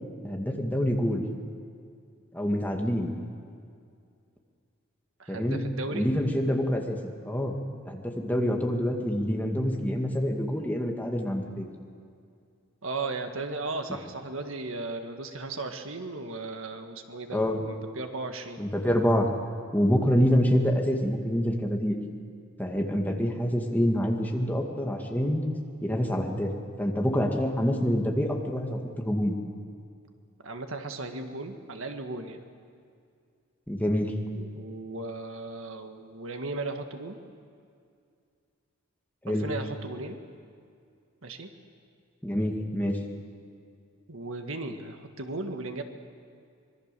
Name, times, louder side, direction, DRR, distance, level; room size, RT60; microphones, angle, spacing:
voice 1, 0.2-1.2 2.3-3.1 5.3-5.6 5.9-7.0 7.3-7.5 7.8-11.7 17.3-17.6 18.6-19.3 19.7-22.0 22.6-25.4 25.8-26.5 26.8-29.3 33.7-34.1 39.2-39.5 42.2-43.0, equal, 10° left, 1 dB, 2.0 m, -26 dB
voice 2, 5.2-6.1 12.8-18.6 30.4-32.4 34.3-37.2 39.3-40.2 41.2-41.5 44.1-45.8, right 2 dB, 75° right, 6 dB, 1.7 m, -36 dB
25.5 x 21.5 x 6.8 m, 2.3 s
head